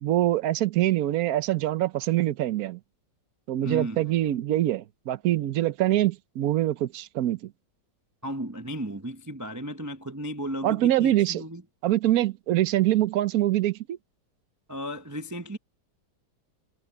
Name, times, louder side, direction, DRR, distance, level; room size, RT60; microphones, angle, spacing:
voice 1, 0.0-2.8 3.5-7.5 10.6-11.4 11.8-14.0, right 14 dB, 65° right, 1.1 m, -24 dB
voice 2, 3.6-4.0 8.2-11.6 14.7-15.6, right 1 dB, 25° right, 0.4 m, -34 dB
omnidirectional pair, 1.9 m